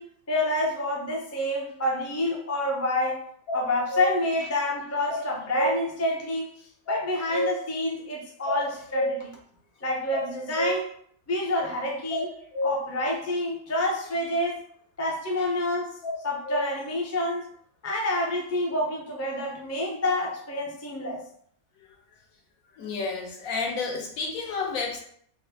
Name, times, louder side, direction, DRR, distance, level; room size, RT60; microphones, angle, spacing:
voice 1, 0.0-3.2 3.5-6.5 6.9-9.3 9.8-10.9 11.3-12.3 12.6-14.6 15.0-16.0 16.2-17.5 17.8-21.2, left 1 dB, 25° left, 0.3 m, -28 dB
sound 1, 3.5-4.2 5.1-5.7 6.9-7.6 8.5-9.2 10.1-10.8 12.1-12.7 16.0-16.7, left 1 dB, 55° left, 1.1 m, -29 dB
voice 2, 22.8-25.0, left 4 dB, 80° left, 1.2 m, -31 dB
4.1 x 2.1 x 4.1 m
omnidirectional pair, 1.5 m